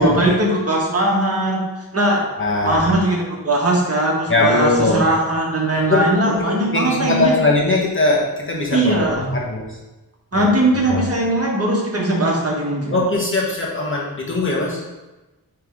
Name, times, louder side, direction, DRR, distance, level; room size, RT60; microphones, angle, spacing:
voice 1, 0.0-1.6 1.9-2.3 2.6-7.4 8.7-9.3 10.3-12.9, right 1 dB, 40° right, -3 dB, 1.5 m, -19 dB
voice 2, 2.4-2.8 4.3-5.1 5.8-9.0 9.3-9.6 10.3-10.5 10.9-11.1 12.9-14.8, left 2 dB, 35° left, -3 dB, 1.3 m, -20 dB
9.5 x 3.4 x 3.7 m, 1.1 s
wide cardioid pair, 115°, 36 cm